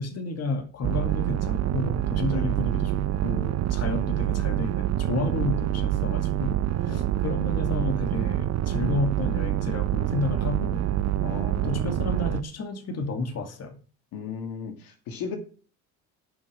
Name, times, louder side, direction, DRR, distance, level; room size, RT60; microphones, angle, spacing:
voice 1, 0.0-6.6 6.8-10.9 11.6-13.8, left 2 dB, 45° left, 5 dB, 2.4 m, -31 dB
sound 1, 0.8-12.4, right 12 dB, 50° right, 0.7 m, -26 dB
voice 2, 2.3-2.6 6.9-7.1 11.2-12.1 14.1-15.4, left 6 dB, 75° left, 4 dB, 2.6 m, -37 dB
9.4 x 6.0 x 7.6 m, 0.39 s
supercardioid pair, 75°, 35 cm